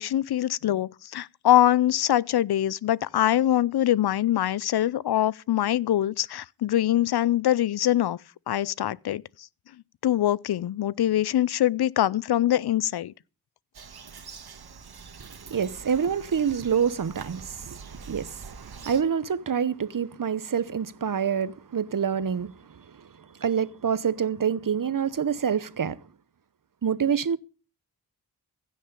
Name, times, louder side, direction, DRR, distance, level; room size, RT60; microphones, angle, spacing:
voice 1, 0.0-8.2 8.5-9.5 10.0-13.1, left 12 dB, 70° left, 0.5 m, -23 dB
Bird vocalization bird call bird song, 13.7-19.0, right 5 dB, 70° right, 1.6 m, -44 dB
voice 2, 15.2-17.8 18.0-22.5 23.4-26.0 26.8-27.4, right 7 dB, 55° right, 0.9 m, -27 dB
15.5 x 6.4 x 6.7 m
cardioid pair, 55°, 40 cm